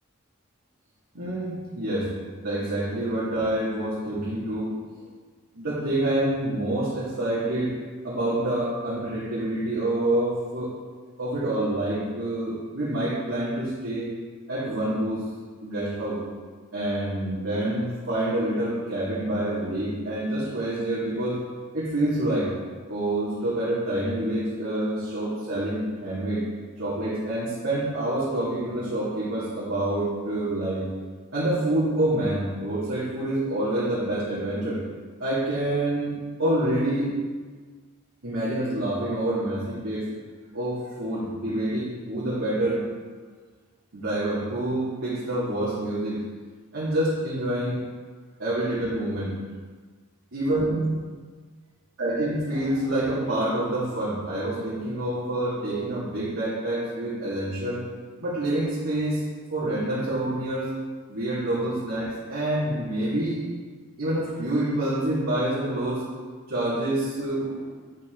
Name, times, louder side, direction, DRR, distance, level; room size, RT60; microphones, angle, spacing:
voice 1, 1.1-2.1 2.4-4.7 5.5-7.7 8.0-10.7 11.2-14.1 14.5-15.3 15.6-16.2 16.7-21.4 21.7-22.5 22.9-26.5 26.8-30.9 31.3-34.8 35.2-37.1 38.2-40.1 40.5-42.8 43.9-46.2 46.7-47.8 48.4-49.4 50.3-50.9 52.0-57.8 58.2-59.2 59.5-60.7 61.1-63.4 64.0-66.0 66.5-67.7, right 1 dB, 70° right, -11 dB, 2.5 m, -27 dB
10.5 x 5.3 x 3.9 m, 1.5 s
head